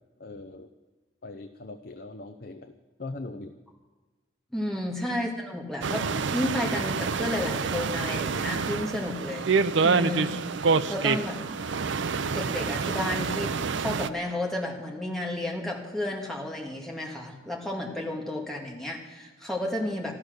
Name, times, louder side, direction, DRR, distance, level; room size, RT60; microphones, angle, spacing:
voice 1, 0.2-0.7 1.2-3.6 5.1-5.2, left 2 dB, 45° left, 8 dB, 0.6 m, -41 dB
voice 2, 4.5-9.5 9.8-10.4 10.9-11.4 12.3-13.5 13.8-20.1, left 1 dB, ahead, -2 dB, 1.9 m, -32 dB
sound 1, 5.8-14.1, right 5 dB, 65° right, 0.5 m, -27 dB
13.5 x 12.0 x 6.5 m, 1.3 s
head